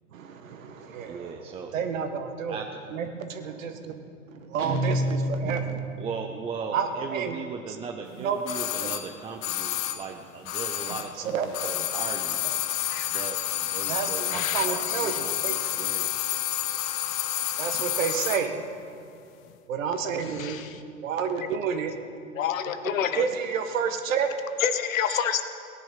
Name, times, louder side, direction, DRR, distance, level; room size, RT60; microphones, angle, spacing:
voice 1, 0.1-4.1 4.4-6.0 6.7-7.4 7.7-7.8 8.0-8.4 8.8-8.9 10.9-11.8 12.4-12.6 13.9-15.5 17.6-18.6 19.7-20.6 21.0-21.9 22.8-24.3, right 6 dB, 65° right, 7 dB, 1.8 m, -30 dB
voice 2, 1.1-1.7 2.5-2.6 6.0-11.3 11.9-12.4 13.1-13.4 13.7-15.3 15.8-16.2, right 5 dB, 15° right, 3 dB, 0.6 m, -37 dB
Guitar, 4.6-6.3, right 1 dB, 80° right, 3.0 m, -28 dB
sound 1, 8.5-11.2 11.5-18.5 18.7-18.8, left 13 dB, 30° left, 0.9 m, -29 dB
voice 3, 12.9-13.2 13.8-14.0 14.3-15.2 20.4-20.8 22.3-23.2 24.6-25.4, left 8 dB, 65° left, 9 dB, 1.3 m, -29 dB
18.5 x 10.5 x 5.8 m, 2.6 s
hypercardioid pair, 115°, 42 cm